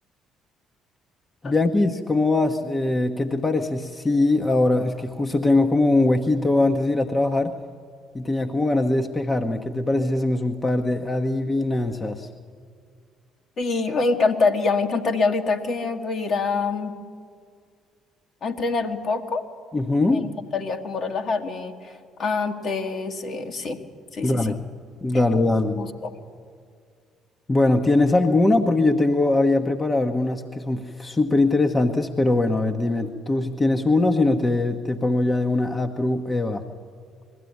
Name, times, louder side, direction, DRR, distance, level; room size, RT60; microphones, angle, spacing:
voice 1, 1.4-7.6 8.1-12.3 19.7-20.2 24.2-24.6 25.0-25.8 27.5-36.6, left 2 dB, 25° left, 5 dB, 1.1 m, -21 dB
voice 2, 13.6-16.9 18.4-19.5 20.0-20.2 20.5-21.7 22.2-23.8 24.1-24.4 25.7-26.1, left 4 dB, 50° left, 4 dB, 1.8 m, -25 dB
21.0 x 14.5 x 9.6 m, 2.1 s
figure-of-eight pair, 50°, 0 cm